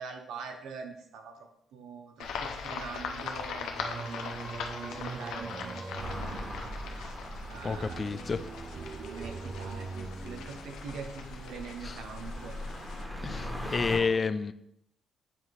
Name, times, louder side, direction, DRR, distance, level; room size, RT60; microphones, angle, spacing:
voice 1, 0.0-1.3 1.7-3.7 4.0-4.2 4.4-6.6 6.9-7.2 7.5-8.0 9.0-12.5, right 5 dB, 80° right, 4 dB, 1.0 m, -44 dB
sound 1, 2.2-13.0, left 6 dB, 80° left, 0.8 m, -41 dB
Singing, 3.7-11.1, right 4 dB, 45° right, 0.6 m, -42 dB
sound 2, 6.0-14.0, equal, 5° right, 1.6 m, -41 dB
voice 2, 7.6-8.4 11.8-12.0 13.2-14.5, left 5 dB, 35° left, 13 dB, 0.4 m, -30 dB
8.6 x 2.9 x 4.7 m, 0.78 s
cardioid pair, 90°, 0 cm